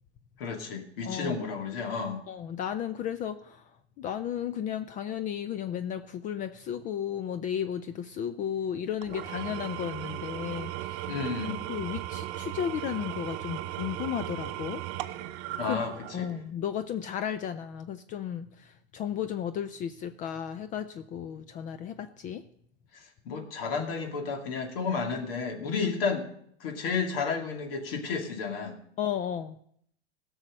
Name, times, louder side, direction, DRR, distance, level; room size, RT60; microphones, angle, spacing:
voice 1, 0.4-2.2 11.1-11.6 15.6-16.3 23.3-26.3 26.6-28.7, left 5 dB, 55° left, 4 dB, 2.5 m, -32 dB
voice 2, 1.0-1.4 2.3-3.6 4.0-11.1 11.7-14.8 15.7-15.8 16.1-22.4 29.0-29.6, left 9 dB, 25° left, 11 dB, 0.4 m, -34 dB
Engine / Tools, 9.0-16.5, right 15 dB, 45° right, 0.8 m, -37 dB
16.5 x 6.3 x 6.5 m, 0.67 s
hypercardioid pair, 115°, 34 cm